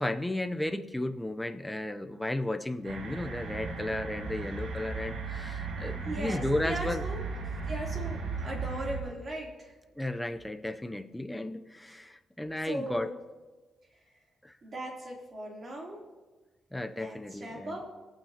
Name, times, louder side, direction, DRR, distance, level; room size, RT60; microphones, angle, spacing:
voice 1, 0.0-7.1 10.0-13.1 14.4-14.5 16.7-17.8, left 1 dB, 5° left, 7 dB, 0.6 m, -34 dB
sound 1, 2.8-9.0, right 4 dB, 90° right, 2.3 m, -36 dB
voice 2, 6.0-7.2 7.7-9.7 12.6-13.1 14.6-16.0 16.9-17.9, right 1 dB, 35° right, -2 dB, 3.1 m, -38 dB
25.0 x 8.9 x 2.8 m, 1.3 s
wide cardioid pair, 155°, 0 cm